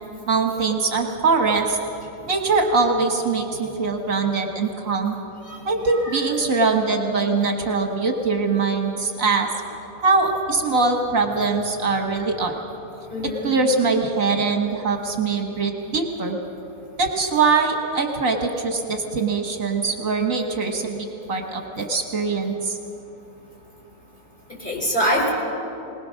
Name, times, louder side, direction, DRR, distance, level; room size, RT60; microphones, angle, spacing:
voice 1, 0.3-1.8 2.3-5.2 5.7-9.5 10.0-12.5 13.4-16.4 17.0-22.8, right 4 dB, 60° right, 4 dB, 1.6 m, -22 dB
voice 2, 5.9-6.2 13.1-13.5 24.6-25.3, equal, 30° left, -3 dB, 4.1 m, -24 dB
21.0 x 20.0 x 6.3 m, 2.9 s
omnidirectional pair, 1.6 m